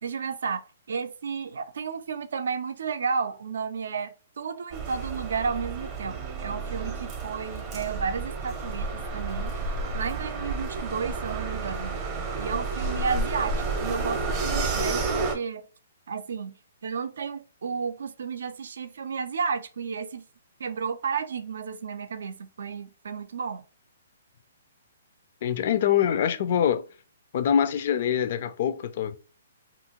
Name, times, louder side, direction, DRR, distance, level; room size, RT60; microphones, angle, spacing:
voice 1, 0.0-9.6 9.9-12.0 12.4-15.7 16.1-20.2 20.6-23.6, right 5 dB, 75° right, 0.4 m, -32 dB
sound 1, 4.7-15.4, right 3 dB, 25° right, 0.6 m, -31 dB
voice 2, 25.4-26.9 27.3-29.2, left 9 dB, 50° left, 0.4 m, -24 dB
2.7 x 2.5 x 2.8 m
hypercardioid pair, 155°, 0 cm